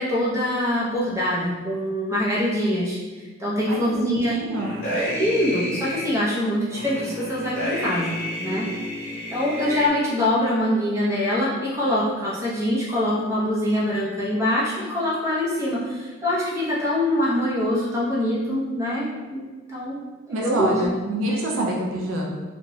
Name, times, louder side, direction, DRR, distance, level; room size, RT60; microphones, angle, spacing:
voice 1, 0.0-3.0 3.4-4.3 5.1-8.7 9.0-20.1 20.4-20.9, left 1 dB, 15° right, -7 dB, 0.5 m, -24 dB
voice 2, 3.7-4.8 20.3-22.3, right 2 dB, 70° right, -2 dB, 0.4 m, -26 dB
sound 1, 4.5-6.1 6.7-9.9, equal, 35° left, 0.9 m, -30 dB
2.8 x 2.1 x 2.6 m, 1.3 s
head